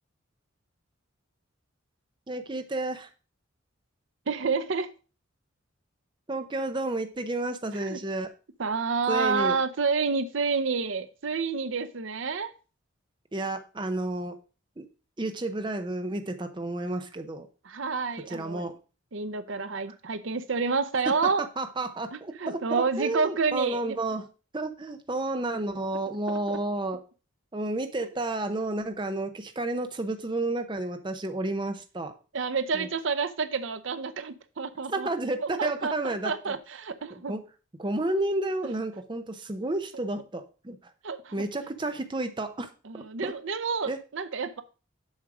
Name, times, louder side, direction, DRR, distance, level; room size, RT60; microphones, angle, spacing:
voice 1, 2.3-3.1 6.3-8.3 9.1-9.6 13.3-14.4 14.8-14.9 15.2-17.5 18.3-18.8 21.4-24.2 24.5-27.0 27.5-32.1 32.7-32.9 34.9-36.6 37.1-37.4 37.8-40.8 41.3-42.7 42.9-43.3 43.9-44.0, right 2 dB, 25° right, 8 dB, 0.6 m, -31 dB
voice 2, 4.3-4.9 7.7-8.0 8.6-12.5 17.6-18.7 19.1-21.5 22.1-24.0 26.3-26.6 32.3-35.1 35.4-37.4 38.6-38.7 41.0-41.4 42.8-44.6, right 4 dB, 70° right, 12 dB, 0.7 m, -29 dB
7.3 x 6.3 x 4.8 m, 0.35 s
head